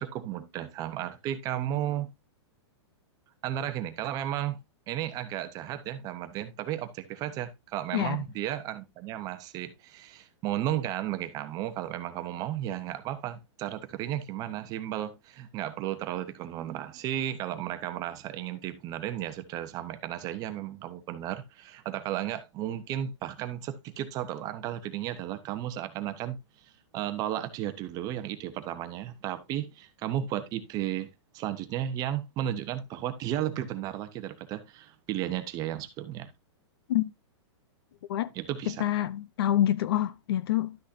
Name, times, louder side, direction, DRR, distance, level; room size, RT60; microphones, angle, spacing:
voice 1, 0.0-2.1 3.4-4.6 4.9-26.4 26.9-31.1 31.3-36.3 38.3-38.8, right 12 dB, 25° right, 0.9 m, -34 dB
voice 2, 7.9-8.2 36.9-37.0 38.1-38.3 38.7-40.8, left 12 dB, 55° left, 0.7 m, -27 dB
12.0 x 6.2 x 2.7 m
hypercardioid pair, 160°, 15 cm